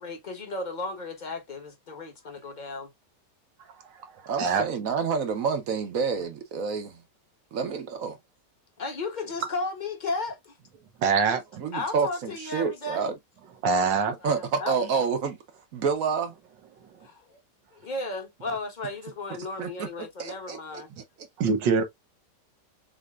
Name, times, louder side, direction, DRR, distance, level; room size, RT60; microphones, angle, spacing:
voice 1, 0.0-2.9 8.8-10.5 11.7-13.0 13.8-13.9 14.2-14.8 17.0-17.4 17.8-20.9, left 2 dB, 30° left, 1.1 m, -34 dB
voice 2, 4.3-7.0 7.5-8.2 11.6-13.1 14.2-15.4 15.7-16.3 19.6-19.9 20.2-20.8, right 5 dB, 55° right, 1.1 m, -28 dB
voice 3, 11.0-11.6 13.6-14.2 21.4-21.8, right 5 dB, 85° right, 1.6 m, -24 dB
6.6 x 2.7 x 2.4 m
omnidirectional pair, 1.9 m